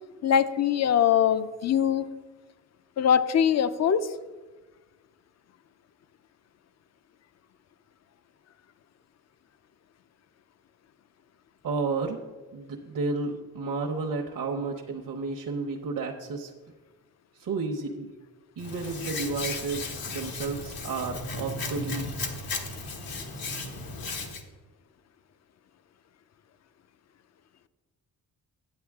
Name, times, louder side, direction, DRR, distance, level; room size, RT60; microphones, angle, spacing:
voice 1, 0.2-2.1 3.0-4.1, left 8 dB, 50° left, 13 dB, 0.5 m, -22 dB
voice 2, 11.6-12.2 12.5-16.5 17.4-18.1 18.6-22.1, right 4 dB, 65° right, 0 dB, 0.9 m, -32 dB
Hands, 18.6-24.4, left 3 dB, 80° left, 1.3 m, -35 dB
9.8 x 8.4 x 3.6 m, 1.3 s
cardioid pair, 90°, 35 cm